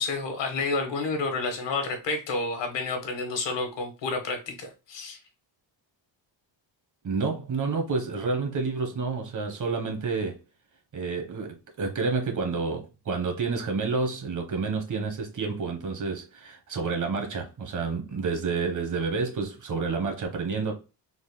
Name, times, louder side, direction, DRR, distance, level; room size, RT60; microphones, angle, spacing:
voice 1, 0.0-5.2, left 3 dB, 70° left, 1.4 m, -30 dB
voice 2, 7.0-10.4 10.9-20.8, right 4 dB, 45° right, 1.1 m, -29 dB
4.9 x 3.9 x 2.2 m
cardioid pair, 145°, 45 cm